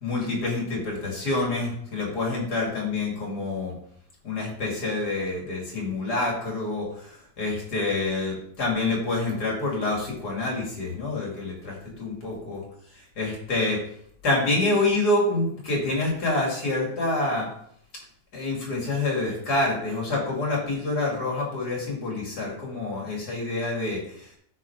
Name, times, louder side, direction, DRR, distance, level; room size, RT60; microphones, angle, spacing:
voice 1, 0.0-3.7 4.2-12.6 13.2-13.8 14.2-17.5 18.3-24.4, left 2 dB, 90° left, -2 dB, 3.0 m, -27 dB
9.4 x 4.4 x 4.6 m, 0.66 s
omnidirectional pair, 1.7 m